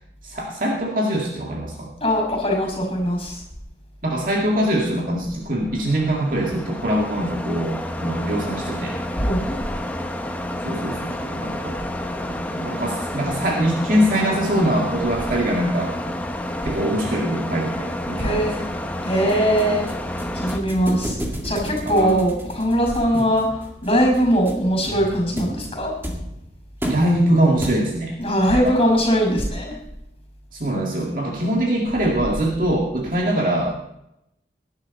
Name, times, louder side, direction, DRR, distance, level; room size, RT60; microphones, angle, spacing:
voice 1, 0.2-1.9 4.0-9.0 10.6-11.8 12.3-15.9 16.6-18.7 21.8-22.2 23.1-23.3 26.8-28.1 28.5-28.7 30.5-33.9, right 1 dB, 50° right, -2 dB, 2.1 m, -23 dB
voice 2, 2.0-3.4 9.2-9.6 18.2-18.6 19.0-19.8 20.3-21.2 21.4-25.9 28.2-29.8, equal, 30° left, 2 dB, 5.8 m, -21 dB
sound 1, 5.5-20.6, left 1 dB, 10° left, 1.0 m, -30 dB
sound 2, 19.3-28.2, equal, 15° right, 2.0 m, -34 dB
19.5 x 11.0 x 4.2 m, 0.81 s
head